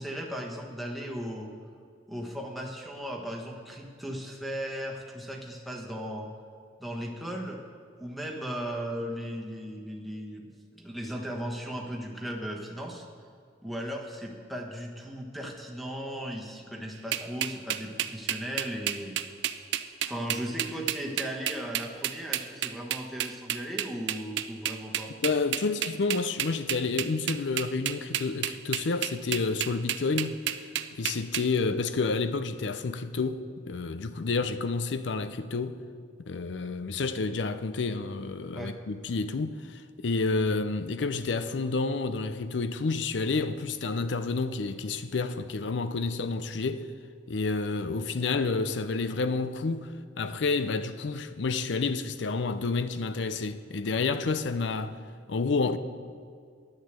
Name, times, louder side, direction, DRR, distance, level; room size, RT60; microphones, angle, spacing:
voice 1, 0.0-1.5 2.1-6.3 6.8-7.6 8.0-13.0 13.6-19.1 20.0-25.1 38.5-38.7, equal, ahead, 1.2 m, -37 dB
sound 1, 17.1-31.4, right 11 dB, 80° right, 0.5 m, -30 dB
voice 2, 25.2-30.4 31.0-35.8 36.3-46.9 47.3-49.9 50.2-55.0 55.3-55.8, left 4 dB, 80° left, 0.6 m, -29 dB
10.5 x 6.5 x 8.1 m
head